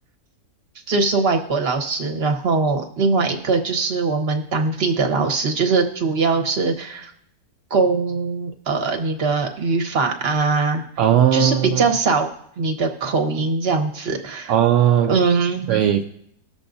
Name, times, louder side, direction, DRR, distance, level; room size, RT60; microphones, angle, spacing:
voice 1, 0.9-7.1 7.7-10.8 11.3-12.3 12.6-14.5 15.1-15.7, right 4 dB, 45° right, 1.2 m, -21 dB
voice 2, 11.0-11.8 14.5-15.1 15.7-16.0, right 10 dB, 65° right, 0.7 m, -17 dB
20.0 x 6.9 x 2.6 m
omnidirectional pair, 1.7 m